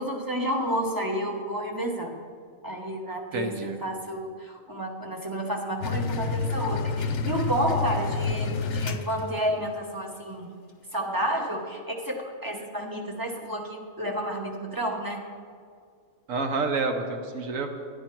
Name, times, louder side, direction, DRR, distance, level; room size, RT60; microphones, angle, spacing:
voice 1, 0.0-2.2 2.6-10.5 10.9-15.2, right 1 dB, 20° right, 1 dB, 0.8 m, -30 dB
voice 2, 3.3-3.8 16.3-17.7, right 4 dB, 80° right, 5 dB, 1.2 m, -28 dB
sound 1, 5.8-9.6, left 4 dB, 70° left, 0.9 m, -29 dB
11.5 x 9.5 x 4.5 m, 2.1 s
omnidirectional pair, 1.4 m